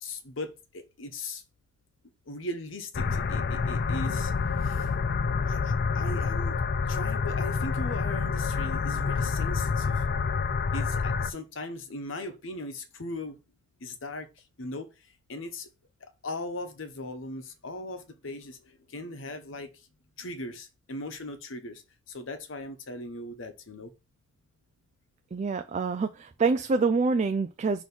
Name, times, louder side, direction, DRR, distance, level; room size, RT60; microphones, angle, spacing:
voice 1, 0.0-1.4 2.3-4.3 4.6-4.9 5.4-6.6 6.9-10.0 10.7-13.4 13.8-14.3 14.6-15.7 16.0-19.9 20.2-23.9, left 2 dB, 75° left, 1.0 m, -39 dB
sound 1, 2.9-11.3, left 5 dB, 50° left, 0.4 m, -28 dB
voice 2, 25.3-27.8, right 4 dB, 35° right, 0.4 m, -26 dB
6.2 x 3.0 x 5.5 m
head